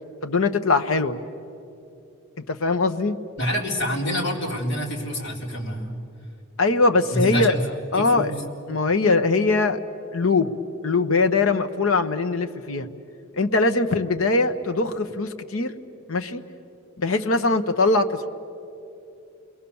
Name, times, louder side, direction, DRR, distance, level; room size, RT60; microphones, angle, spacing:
voice 1, 0.2-1.2 2.5-3.2 6.6-7.6 7.9-8.4 8.7-9.8 10.1-10.5 10.8-12.9 13.4-15.7 16.1-16.4 17.0-18.3, left 3 dB, 80° left, 7 dB, 1.1 m, -21 dB
voice 2, 3.4-5.9 7.1-7.6 7.9-8.3, equal, 55° left, -2 dB, 4.2 m, -27 dB
29.5 x 21.5 x 7.1 m, 2.7 s
head